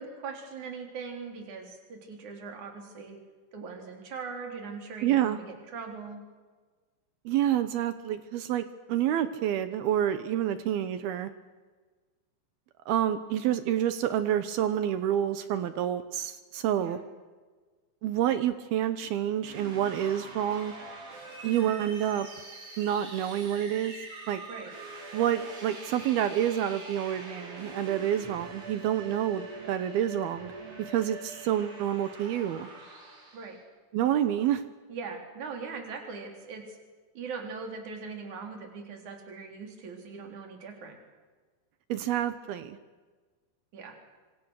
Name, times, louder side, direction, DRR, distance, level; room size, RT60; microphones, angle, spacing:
voice 1, 0.0-3.2 3.5-6.2 16.8-17.0 21.5-21.7 24.5-24.7 33.3-33.6 34.9-36.8 37.1-41.0 43.7-44.0, right 5 dB, 40° right, 3 dB, 4.7 m, -40 dB
voice 2, 5.0-5.4 7.3-11.3 12.9-17.0 18.0-20.7 21.4-22.3 22.8-24.0 24.3-24.4 25.1-30.5 30.8-32.7 33.9-34.6 41.9-42.8, right 11 dB, 75° right, 11 dB, 2.4 m, -28 dB
sound 1, 19.4-33.6, right 2 dB, 60° right, 7.4 m, -44 dB
26.5 x 25.5 x 6.4 m, 1.4 s
omnidirectional pair, 5.5 m